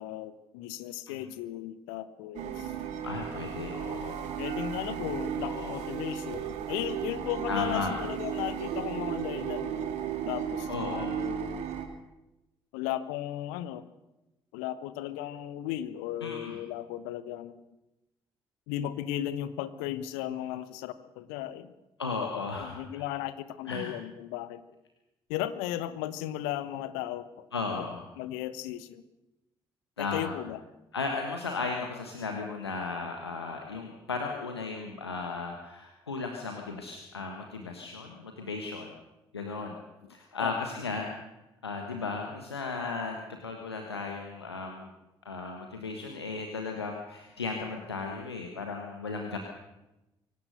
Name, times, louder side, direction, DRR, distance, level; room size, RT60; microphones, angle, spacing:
voice 1, 0.0-2.7 4.4-9.9 10.3-11.7 12.7-13.9 14.5-17.6 18.7-21.7 22.6-24.6 25.3-27.5 27.8-27.9 28.2-29.0 30.0-30.6 40.4-40.5, left 12 dB, 70° left, 14 dB, 1.1 m, -36 dB
sound 1, 2.3-11.9, right 8 dB, 65° right, 2.4 m, -34 dB
voice 2, 3.0-4.2 5.4-5.8 7.5-7.9 10.7-11.3 16.2-16.6 22.0-23.0 23.7-24.0 27.5-28.0 30.0-30.4 30.9-38.9 39.3-39.8 40.1-41.1 41.6-44.9 45.2-49.4, left 4 dB, 85° left, 2 dB, 1.4 m, -35 dB
24.0 x 17.5 x 6.7 m, 0.97 s
figure-of-eight pair, 45°, 13 cm